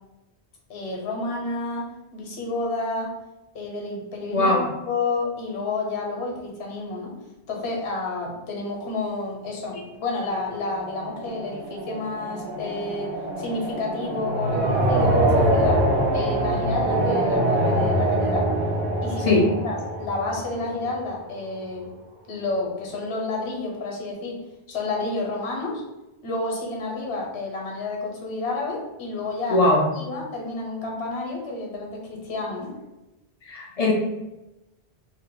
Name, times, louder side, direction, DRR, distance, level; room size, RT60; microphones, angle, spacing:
voice 1, 0.7-3.1 3.5-7.1 7.5-15.8 16.1-18.5 19.0-19.3 19.6-21.9 22.3-24.4 24.7-25.8 26.2-29.6 29.9-32.7, left 3 dB, 75° left, 0 dB, 1.0 m, -30 dB
voice 2, 4.3-4.6 19.2-19.5 29.5-29.8 33.5-33.9, left 2 dB, 60° left, 0 dB, 0.4 m, -19 dB
sound 1, 10.2-21.1, right 1 dB, 50° right, 0.7 m, -24 dB
2.6 x 2.1 x 3.7 m, 0.99 s
omnidirectional pair, 1.1 m